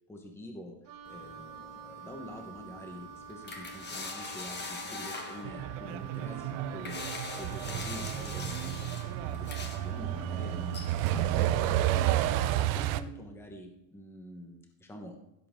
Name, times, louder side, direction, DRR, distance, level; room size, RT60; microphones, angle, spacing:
voice 1, 0.1-0.8 1.0-12.0 12.4-15.2, equal, 5° left, 3 dB, 1.2 m, -46 dB
Wind instrument woodwind instrument, 0.8-11.5, right 6 dB, 45° right, 1.5 m, -48 dB
sound 1, 1.1-11.6, left 3 dB, 20° left, 1.7 m, -44 dB
Truck, 5.4-13.0, right 13 dB, 70° right, 0.9 m, -31 dB
16.0 x 7.8 x 3.7 m, 0.91 s
cardioid pair, 165°, 47 cm